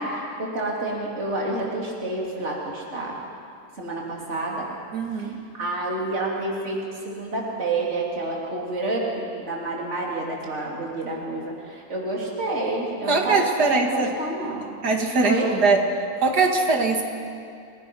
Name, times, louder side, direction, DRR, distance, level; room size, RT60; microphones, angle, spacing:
voice 1, 0.0-3.2 3.8-4.7 5.2-6.8 7.0-14.7 15.2-15.6, right 2 dB, 45° right, -3 dB, 3.4 m, -29 dB
voice 2, 4.9-5.4 13.1-14.1 14.8-15.8 16.2-17.0, right 3 dB, 75° right, 2 dB, 2.5 m, -21 dB
29.5 x 17.5 x 5.4 m, 2.4 s
omnidirectional pair, 1.7 m